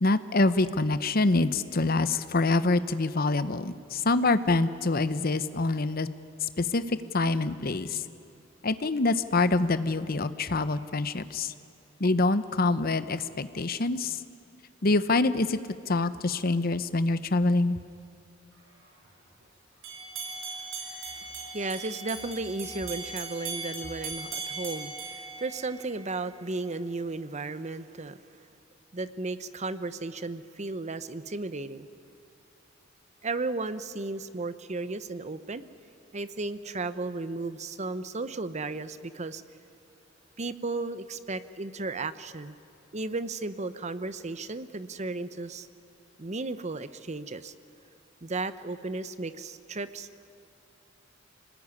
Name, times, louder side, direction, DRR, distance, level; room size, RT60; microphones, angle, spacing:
voice 1, 0.0-6.1 6.4-8.0 8.6-11.5 12.0-14.2 14.8-15.6 15.9-17.8, left 3 dB, 50° left, 13 dB, 0.9 m, -25 dB
sound 1, 19.8-26.1, right 4 dB, 85° right, 6.4 m, -39 dB
voice 2, 21.5-28.2 28.9-31.9 33.2-35.6 36.1-39.4 40.4-42.6 42.9-45.7 46.2-47.5 48.2-50.1, right 3 dB, 35° right, 13 dB, 0.8 m, -34 dB
25.0 x 19.5 x 9.7 m, 2.6 s
head